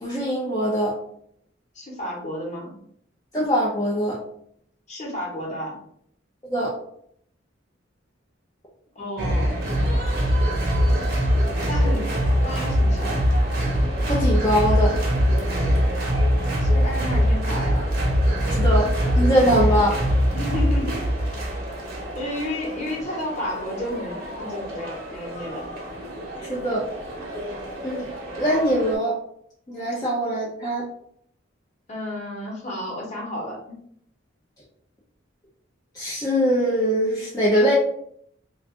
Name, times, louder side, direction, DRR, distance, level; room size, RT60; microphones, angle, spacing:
voice 1, 0.0-1.0 3.3-4.2 6.5-6.7 14.1-15.0 18.5-18.9 19.1-20.0 26.4-26.9 27.8-28.1 28.4-29.2 29.7-30.8 35.9-37.7, equal, 20° left, -6 dB, 0.5 m, -22 dB
voice 2, 1.7-2.7 4.9-5.8 8.9-9.5 11.6-12.1 12.4-13.3 16.6-17.9 20.3-21.1 22.1-25.6 31.9-33.8, left 1 dB, 35° left, -3 dB, 1.0 m, -32 dB
sound 1, 9.2-28.9, equal, 50° right, 0.9 m, -23 dB
2.5 x 2.3 x 3.6 m, 0.68 s
head